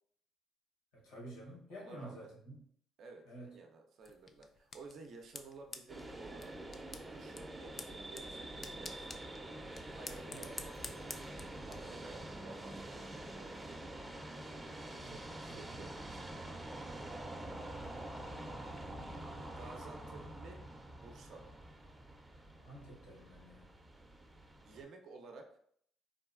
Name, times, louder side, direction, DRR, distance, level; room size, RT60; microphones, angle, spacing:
voice 1, 0.9-2.6 3.3-3.5 10.3-10.5 15.0-16.5 22.6-23.7, right 1 dB, 90° left, -3 dB, 0.9 m, -51 dB
voice 2, 1.7-2.3 3.0-9.2 9.9-11.0 11.6-13.5 14.9-16.0 19.6-20.6 21.0-21.5 24.6-25.6, right 3 dB, 65° right, 3 dB, 0.5 m, -54 dB
sound 1, 4.0-11.8, left 4 dB, 40° left, 0.3 m, -51 dB
sound 2, 5.9-24.8, right 1 dB, 20° right, 0.5 m, -47 dB
3.6 x 2.2 x 2.4 m, 0.65 s
supercardioid pair, 60°, 0 cm